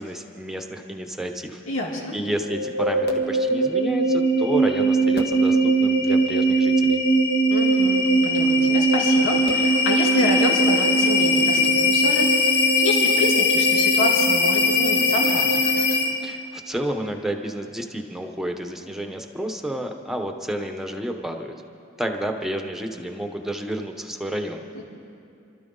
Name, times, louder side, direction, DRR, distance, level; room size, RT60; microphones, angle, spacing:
voice 1, 0.0-1.6 2.1-7.0 16.2-21.5 22.0-24.8, right 1 dB, ahead, 4 dB, 1.0 m, -30 dB
voice 2, 1.7-2.2 7.5-15.4 24.7-24.8, left 2 dB, 90° left, -2 dB, 2.9 m, -28 dB
sound 1, 2.4-16.3, equal, 55° left, 1.5 m, -20 dB
27.5 x 13.0 x 4.0 m, 2.6 s
head